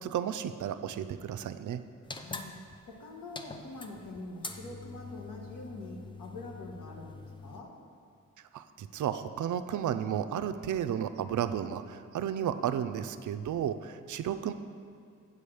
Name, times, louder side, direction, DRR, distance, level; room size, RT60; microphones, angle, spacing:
voice 1, 0.0-1.8 8.5-14.5, right 9 dB, 65° right, 11 dB, 0.5 m, -33 dB
sound 1, 2.0-7.6, left 3 dB, 15° left, 0.4 m, -45 dB
voice 2, 2.1-2.5 2.9-7.7, left 2 dB, 90° left, -1 dB, 1.4 m, -44 dB
8.0 x 4.9 x 7.0 m, 2.4 s
wide cardioid pair, 130°, 32 cm